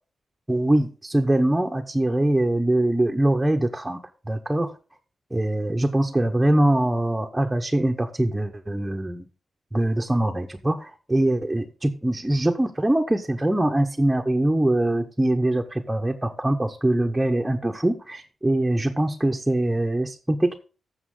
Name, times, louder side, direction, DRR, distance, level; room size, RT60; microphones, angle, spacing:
voice 1, 0.5-4.0 4.3-4.7 5.3-9.3 9.7-20.6, right 1 dB, 10° right, 2 dB, 0.9 m, -23 dB
12.5 x 7.3 x 3.7 m, 0.35 s
wide cardioid pair, 115°, 0 cm